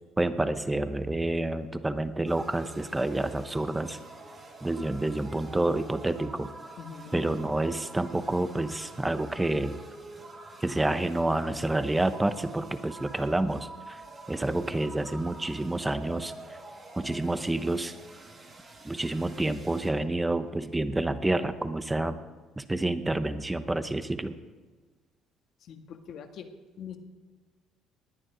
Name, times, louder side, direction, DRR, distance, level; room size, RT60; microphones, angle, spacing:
voice 1, 0.2-4.0 4.6-6.5 7.1-9.8 10.6-14.0 14.3-16.6 17.0-17.9 18.8-22.2 22.6-24.3, right 2 dB, 10° right, 11 dB, 0.8 m, -29 dB
sound 1, 2.2-19.9, right 2 dB, 30° right, 3.7 m, -47 dB
voice 2, 6.8-7.2 25.6-26.5 26.8-27.0, left 7 dB, 55° left, 5 dB, 1.6 m, -43 dB
19.0 x 10.5 x 5.0 m, 1.4 s
cardioid pair, 125°, 0 cm